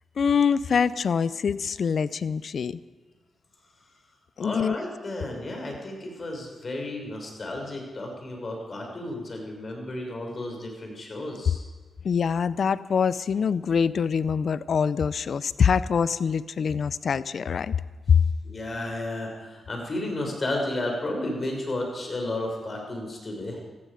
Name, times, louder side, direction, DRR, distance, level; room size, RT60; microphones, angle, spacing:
voice 1, 0.2-2.8 4.4-4.8 12.0-17.7 18.1-18.2, left 6 dB, 65° left, 17 dB, 0.5 m, -24 dB
voice 2, 4.4-11.6 18.4-23.6, left 1 dB, 45° left, 1 dB, 6.2 m, -32 dB
18.5 x 15.0 x 5.0 m, 1.4 s
supercardioid pair, 50°, 0 cm